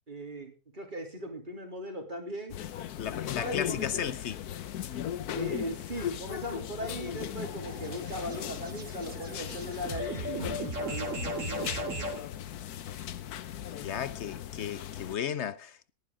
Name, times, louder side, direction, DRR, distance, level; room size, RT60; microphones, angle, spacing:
voice 1, 0.1-2.6 3.1-4.1 5.3-12.1, equal, 30° right, 3.5 m, -39 dB
sound 1, 2.5-15.2, left 10 dB, 80° left, 1.3 m, -38 dB
voice 2, 3.0-4.4 13.8-15.9, left 9 dB, 55° left, 1.0 m, -35 dB
sound 2, 6.8-12.2, right 1 dB, 55° right, 2.7 m, -38 dB
18.0 x 11.0 x 3.7 m
omnidirectional pair, 1.6 m